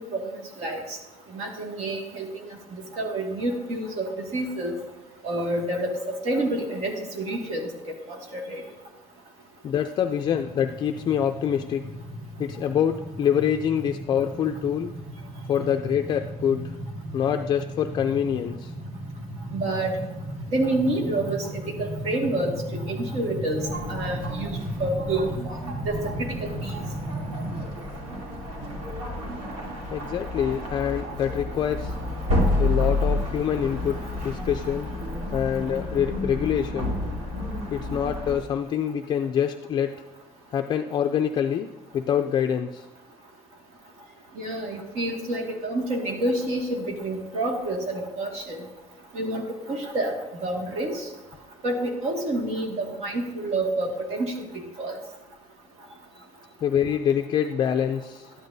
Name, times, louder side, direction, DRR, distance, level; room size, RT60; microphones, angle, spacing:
voice 1, 1.3-2.3 2.9-4.7 5.2-8.6 19.5-20.0 20.5-25.3 25.9-26.7 44.4-48.6 49.1-50.1 50.4-51.1 51.6-55.0, right 1 dB, 65° right, 1 dB, 2.0 m, -28 dB
voice 2, 9.6-11.9 12.4-14.9 15.5-16.8 17.1-18.7 29.9-31.9 32.6-34.9 35.3-37.0 37.7-40.0 40.5-42.9 56.6-58.3, left 9 dB, 40° left, 5 dB, 0.4 m, -25 dB
sound 1, 10.2-27.7, equal, 15° right, 1.0 m, -36 dB
sound 2, 23.6-38.4, left 1 dB, 90° right, 2.8 m, -30 dB
12.5 x 10.5 x 2.7 m, 1.1 s
cardioid pair, 170°, 12 cm